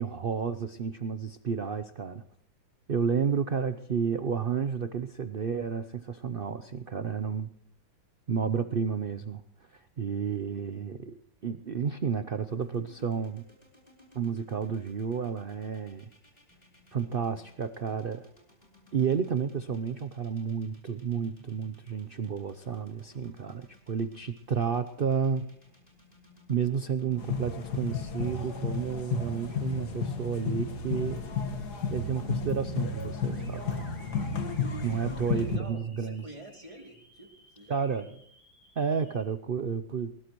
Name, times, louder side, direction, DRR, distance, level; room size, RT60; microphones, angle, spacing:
voice 1, 0.0-2.2 2.9-7.5 8.3-9.4 9.7-13.4 14.1-16.1 16.9-18.3 18.9-25.5 26.5-31.5 31.9-34.0 34.8-36.2 37.7-38.0 38.8-40.1, right 6 dB, 85° right, 11 dB, 0.5 m, -31 dB
sound 1, 12.5-30.6, equal, 20° left, 4.4 m, -59 dB
sound 2, 27.2-35.6, left 5 dB, 60° left, 2.0 m, -32 dB
sound 3, 33.3-39.2, equal, 5° left, 5.6 m, -56 dB
voice 2, 35.3-38.2, right 1 dB, 15° right, 2 dB, 2.7 m, -48 dB
20.0 x 20.0 x 3.1 m, 0.67 s
omnidirectional pair, 2.0 m